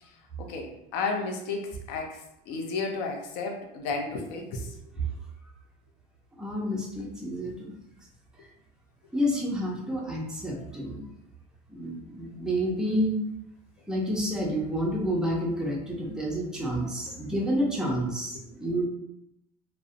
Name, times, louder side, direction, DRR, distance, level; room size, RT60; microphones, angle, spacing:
voice 1, 0.4-4.7 5.0-5.1 17.1-17.2, left 4 dB, 65° left, 2 dB, 0.5 m, -33 dB
voice 2, 6.4-7.7 9.1-11.0 11.7-13.2 13.9-18.8, equal, 5° right, -2 dB, 0.4 m, -29 dB
2.5 x 2.0 x 2.4 m, 0.82 s
cardioid pair, 150°, 18 cm